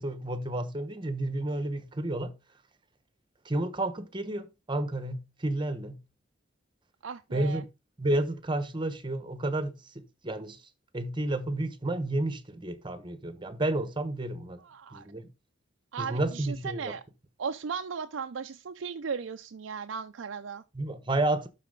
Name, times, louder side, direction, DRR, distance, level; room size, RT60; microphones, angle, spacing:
voice 1, 0.0-2.3 3.4-6.0 7.3-7.6 8.0-10.6 10.9-14.6 14.9-15.3 16.0-16.9 20.7-21.5, right 2 dB, 25° right, 0.9 m, -31 dB
voice 2, 7.0-7.6 14.6-15.1 15.9-17.0 17.4-20.6, right 6 dB, 80° right, 0.5 m, -36 dB
12.0 x 4.2 x 3.7 m
head